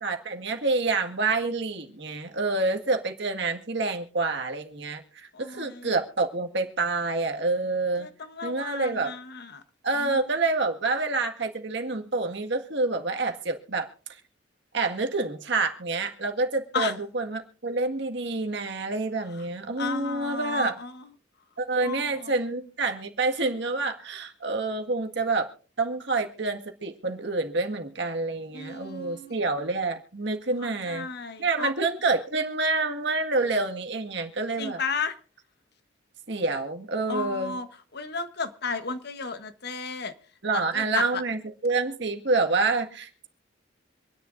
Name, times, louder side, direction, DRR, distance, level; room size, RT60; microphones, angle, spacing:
voice 1, 0.0-8.1 8.4-9.1 9.8-13.9 14.7-20.8 21.6-25.5 25.8-31.1 31.4-34.8 36.3-37.6 40.4-43.3, right 3 dB, 70° right, 4 dB, 1.8 m, -27 dB
voice 2, 5.3-5.9 8.0-9.6 9.9-10.2 16.7-16.9 19.8-21.1 21.8-22.3 28.5-29.5 30.6-31.7 34.6-35.1 37.1-37.7 37.9-40.1 40.5-41.2, left 4 dB, 60° left, 9 dB, 1.2 m, -33 dB
26.0 x 10.0 x 2.6 m, 0.41 s
head